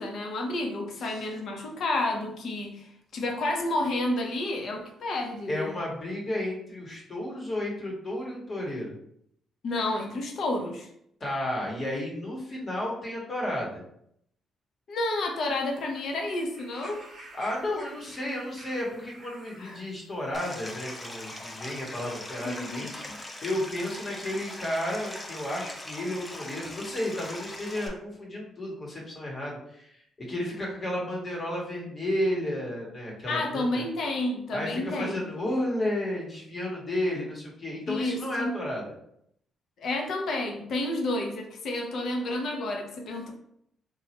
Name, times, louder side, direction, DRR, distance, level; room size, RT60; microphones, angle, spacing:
voice 1, 0.0-5.7 9.6-10.9 14.9-17.0 19.6-19.8 22.4-22.9 33.3-35.3 37.9-38.5 39.8-43.3, left 2 dB, 65° left, 2 dB, 0.6 m, -30 dB
voice 2, 5.5-9.0 11.2-13.8 17.3-33.8 34.5-38.8, left 1 dB, 40° left, -2 dB, 1.1 m, -32 dB
sound 1, 15.4-24.1 25.0-25.1, right 2 dB, 45° right, 0.7 m, -51 dB
Stream, 20.3-27.9, left 1 dB, 20° left, 0.5 m, -41 dB
3.0 x 2.3 x 2.9 m, 0.72 s
cardioid pair, 90°, 0 cm